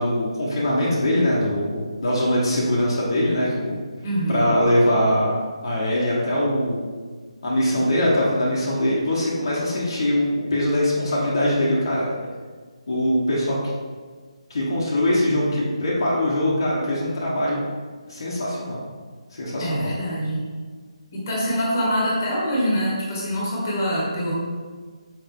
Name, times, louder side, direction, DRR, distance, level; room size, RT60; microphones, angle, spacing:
voice 1, 0.0-3.8 4.3-5.3 5.6-6.9 7.4-12.1 12.9-13.6 14.5-17.6 18.1-18.8 19.3-19.9, left 1 dB, 45° left, -6 dB, 1.3 m, -22 dB
voice 2, 4.0-4.5 19.6-20.5 21.1-24.3, equal, 25° left, -5 dB, 1.5 m, -24 dB
5.8 x 5.6 x 3.7 m, 1.5 s
hypercardioid pair, 175°, 3 cm